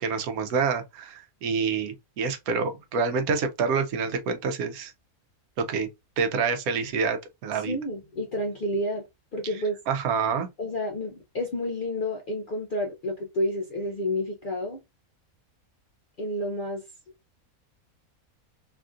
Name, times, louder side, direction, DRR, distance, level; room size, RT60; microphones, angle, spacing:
voice 1, 0.0-4.9 5.7-5.9 6.2-7.8 9.9-10.5, right 5 dB, 85° right, 1.1 m, -27 dB
voice 2, 7.5-9.0 9.3-9.8 10.6-14.8 16.2-16.8, left 1 dB, 65° left, 0.5 m, -30 dB
3.3 x 2.4 x 2.5 m
omnidirectional pair, 1.5 m